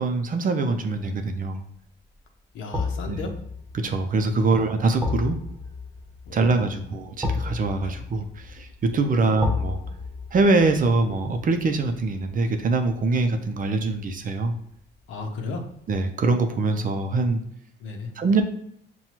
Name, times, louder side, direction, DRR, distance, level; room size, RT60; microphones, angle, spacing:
voice 1, 0.0-1.6 3.1-3.2 3.7-5.4 6.3-9.8 10.3-14.5 15.9-17.4 18.2-18.4, right 3 dB, 45° right, 6 dB, 0.5 m, -23 dB
sound 1, 1.0-1.3 2.7-13.7 14.1-14.2, left 4 dB, 10° right, 0.7 m, -34 dB
voice 2, 2.5-3.4 4.3-4.6 6.3-6.9 7.8-8.0 9.2-9.3 15.1-15.7 17.8-18.1, left 3 dB, 80° left, 4 dB, 0.7 m, -35 dB
5.8 x 2.3 x 2.9 m, 0.70 s
cardioid pair, 90°, 20 cm